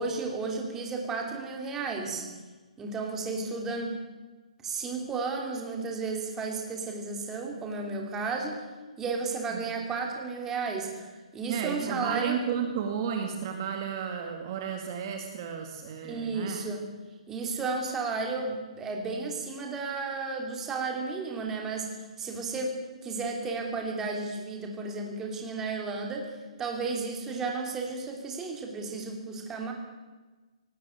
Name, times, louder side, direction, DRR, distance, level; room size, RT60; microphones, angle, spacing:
voice 1, 0.0-2.2 2.8-4.0 4.6-8.6 9.0-12.4 16.0-16.8 17.3-21.9 22.2-26.3 26.6-29.7, right 4 dB, 10° right, 1 dB, 2.9 m, -33 dB
voice 2, 11.5-16.6, right 7 dB, 30° right, 4 dB, 2.0 m, -33 dB
18.0 x 18.0 x 9.4 m, 1.3 s
hypercardioid pair, 170°, 4 cm